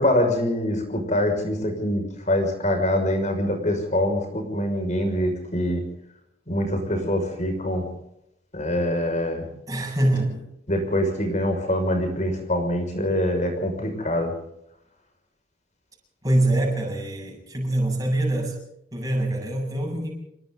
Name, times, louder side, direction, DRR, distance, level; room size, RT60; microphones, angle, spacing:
voice 1, 0.0-5.8 6.5-7.9 8.5-9.5 10.7-14.3, left 1 dB, 40° left, 4 dB, 6.1 m, -24 dB
voice 2, 9.7-10.5 16.2-18.6 18.9-20.1, right 1 dB, 20° right, 0 dB, 7.8 m, -24 dB
28.5 x 23.0 x 4.0 m, 0.78 s
head